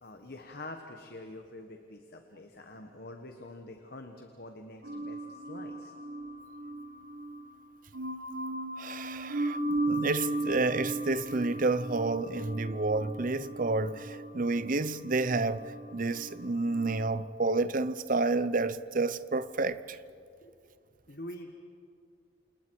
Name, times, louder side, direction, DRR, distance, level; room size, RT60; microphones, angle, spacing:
voice 1, 0.0-5.9 20.4-20.5 21.1-21.6, left 1 dB, 50° left, 1.4 m, -46 dB
sound 1, 4.8-17.1, right 2 dB, 65° right, 1.5 m, -37 dB
voice 2, 8.8-9.6 9.8-20.0, right 3 dB, 45° right, 0.7 m, -30 dB
28.5 x 28.0 x 4.8 m
head